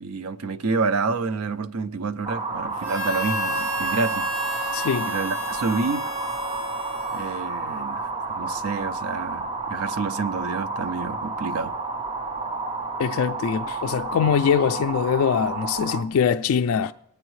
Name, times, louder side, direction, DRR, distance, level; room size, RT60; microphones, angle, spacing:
voice 1, 0.0-4.3 5.0-6.1 7.1-11.7, right 4 dB, 80° right, 0.5 m, -28 dB
sound 1, 2.2-16.0, right 3 dB, 25° right, 0.6 m, -31 dB
Harmonica, 2.8-7.7, equal, 65° right, 1.2 m, -31 dB
voice 2, 4.7-5.1 13.0-16.9, left 7 dB, 70° left, 0.3 m, -23 dB
18.5 x 8.8 x 3.1 m
head